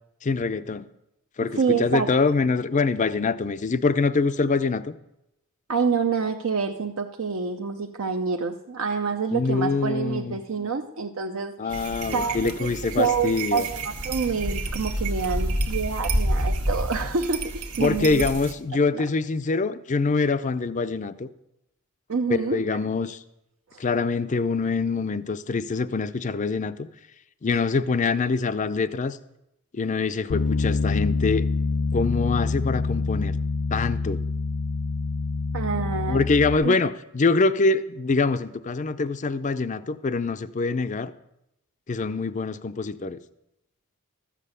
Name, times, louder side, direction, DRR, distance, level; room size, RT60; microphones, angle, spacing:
voice 1, 0.2-0.9 1.4-4.9 9.3-10.4 11.6-13.7 17.8-21.3 22.5-23.2 23.8-26.9 27.4-29.2 29.7-31.4 31.9-33.4 33.7-34.2 36.1-41.1 41.9-43.2, left 4 dB, 35° left, 13 dB, 0.5 m, -24 dB
voice 2, 1.6-2.1 5.7-12.7 13.0-18.3 18.9-19.0 22.1-22.6 23.7-23.8 35.5-36.2 36.6-36.8, right 5 dB, 65° right, 5 dB, 0.6 m, -27 dB
sound 1, 11.7-18.5, right 1 dB, 85° right, 1.4 m, -29 dB
Bass guitar, 30.3-36.6, left 3 dB, 85° left, 0.5 m, -26 dB
13.0 x 7.5 x 6.7 m, 0.85 s
head